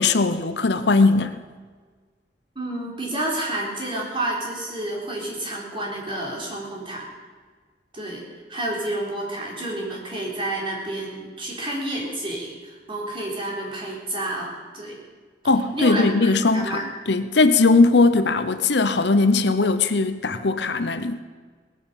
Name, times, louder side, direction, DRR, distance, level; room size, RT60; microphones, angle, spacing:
voice 1, 0.0-1.4 15.4-21.2, left 3 dB, 65° left, 10 dB, 0.8 m, -19 dB
voice 2, 2.6-7.1 7.9-15.0 15.7-16.9, right 1 dB, 30° right, -2 dB, 3.9 m, -30 dB
19.0 x 9.4 x 7.2 m, 1.5 s
head